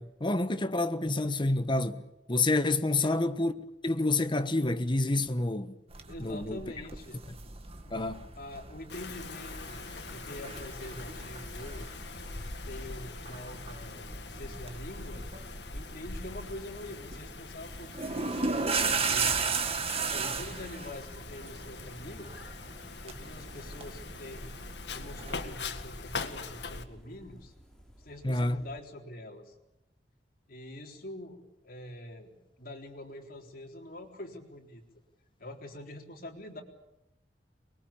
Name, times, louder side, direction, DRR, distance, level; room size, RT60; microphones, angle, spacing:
voice 1, 0.0-2.0 2.3-5.8 6.2-6.6 7.9-8.3 28.2-28.6, left 2 dB, 30° left, 1.3 m, -28 dB
sound 1, 5.9-25.5, right 4 dB, 35° right, 2.1 m, -37 dB
voice 2, 6.1-7.2 7.8-8.1 8.4-9.8 10.1-11.9 12.6-15.2 15.7-19.4 20.0-22.3 23.0-24.6 24.9-27.5 28.0-29.5 30.5-34.8 35.4-36.6, left 1 dB, 55° left, 4.0 m, -45 dB
Wind, 8.9-26.8, left 3 dB, 70° left, 1.9 m, -42 dB
sound 2, 20.4-28.8, equal, 5° left, 4.3 m, -57 dB
24.5 x 22.0 x 8.7 m
head